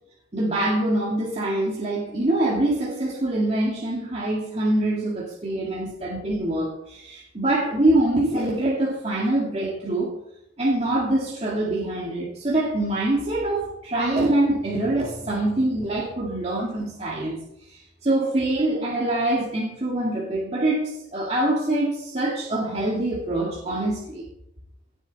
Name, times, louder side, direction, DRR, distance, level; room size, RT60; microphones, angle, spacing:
voice 1, 0.3-10.1 10.6-17.4 17.7-24.2, right 1 dB, 30° right, -4 dB, 2.1 m, -24 dB
18.0 x 7.4 x 4.2 m, 0.79 s
head